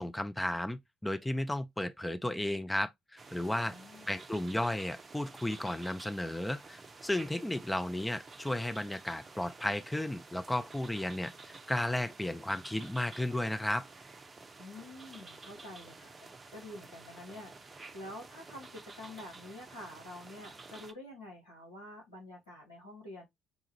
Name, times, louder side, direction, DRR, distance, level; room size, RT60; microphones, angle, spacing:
voice 1, 0.0-3.7 4.1-13.9, left 1 dB, 10° left, 0.5 m, -34 dB
sound 1, 3.2-20.9, right 3 dB, 30° right, 0.6 m, -51 dB
voice 2, 3.7-4.1 14.6-23.3, left 1 dB, 85° left, 1.5 m, -48 dB
5.3 x 2.4 x 2.9 m
figure-of-eight pair, 50°, 0 cm